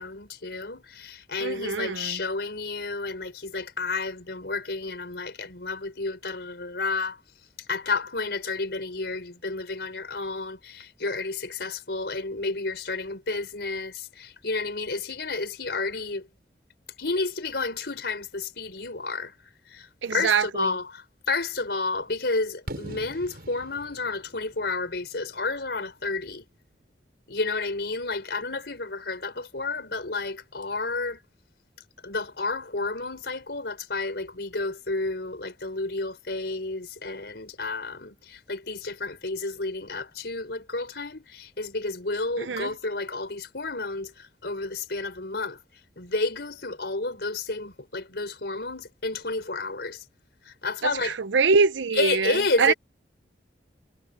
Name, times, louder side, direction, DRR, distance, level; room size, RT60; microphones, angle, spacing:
voice 1, 0.0-7.2 7.7-16.3 17.0-19.3 19.6-26.5 27.3-31.2 32.0-45.6 46.0-50.0 50.4-51.2 51.9-52.7, left 3 dB, 65° left, 4.7 m, -31 dB
voice 2, 1.4-2.2 20.0-20.7 42.4-42.7 50.8-52.7, right 5 dB, 85° right, 0.6 m, -24 dB
Fireworks, 22.7-26.5, right 1 dB, 55° right, 7.6 m, -43 dB
head